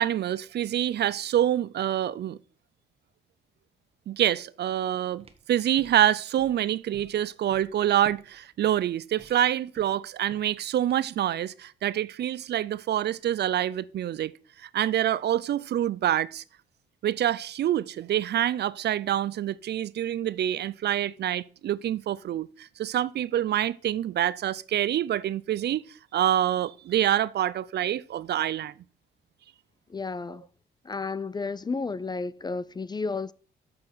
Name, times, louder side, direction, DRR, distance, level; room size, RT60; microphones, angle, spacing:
voice 1, 0.0-2.4 4.1-14.3 14.6-16.4 17.0-25.8 26.1-28.7, right 11 dB, 55° right, 0.5 m, -26 dB
sound 1, 5.2-11.2, right 3 dB, 30° right, 1.3 m, -52 dB
voice 2, 29.9-30.5 30.9-33.3, left 4 dB, 20° left, 0.3 m, -32 dB
7.6 x 6.0 x 6.2 m
cardioid pair, 90°, 20 cm